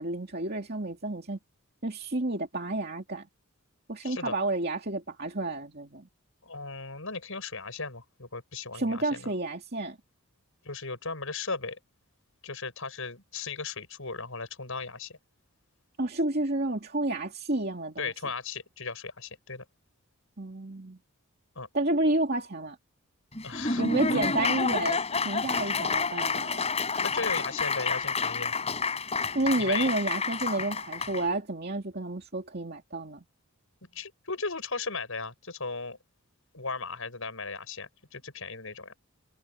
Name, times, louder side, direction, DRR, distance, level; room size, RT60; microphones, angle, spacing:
voice 1, 0.0-1.4 1.8-3.3 3.9-6.1 8.7-10.0 16.0-18.1 20.4-21.0 21.7-22.8 23.8-26.7 29.3-33.2, right 2 dB, 45° right, 2.6 m, -30 dB
voice 2, 4.0-4.4 6.4-9.3 10.6-11.8 12.4-15.2 18.0-19.6 21.5-21.7 23.4-23.8 27.0-28.5 29.6-29.9 33.9-36.0 36.5-38.9, left 4 dB, 65° left, 6.7 m, -36 dB
Laughter / Applause, 23.4-31.2, left 4 dB, 30° left, 5.1 m, -29 dB
head